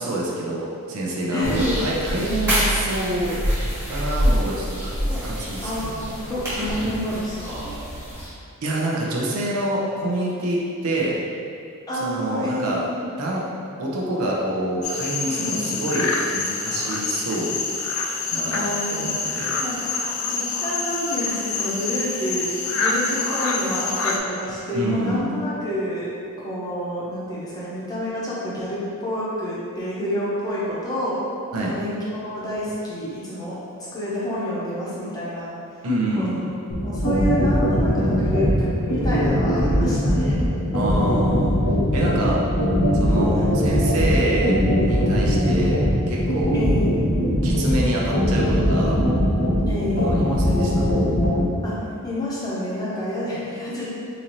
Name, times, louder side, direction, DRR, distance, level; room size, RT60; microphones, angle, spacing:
voice 1, 0.0-3.4 3.9-6.1 8.6-11.2 11.9-12.8 13.2-13.4 13.8-17.6 18.3-19.5 24.7-25.3 31.5-31.8 35.8-36.5 40.7-41.6 41.9-42.4 42.9-45.8 46.1-46.6 47.4-49.0 50.0-50.9, right 1 dB, 70° right, -4 dB, 0.6 m, -26 dB
voice 2, 1.3-1.7 5.0-5.2 5.6-7.7 11.9-13.0 15.2-15.8 18.5-18.9 19.6-19.8 20.2-26.1 26.4-31.2 31.6-35.5 36.2-36.3 36.8-40.4 43.4-43.6 46.5-47.0 49.7-50.2 51.6-51.7 52.0-53.9, equal, 15° left, -8 dB, 0.7 m, -28 dB
sound 1, 1.4-8.3, equal, 15° right, 1.4 m, -26 dB
sound 2, 14.8-24.2, left 4 dB, 60° left, 0.4 m, -26 dB
sound 3, 36.7-51.4, equal, 80° left, 0.8 m, -20 dB
3.9 x 2.6 x 3.0 m, 2.4 s
head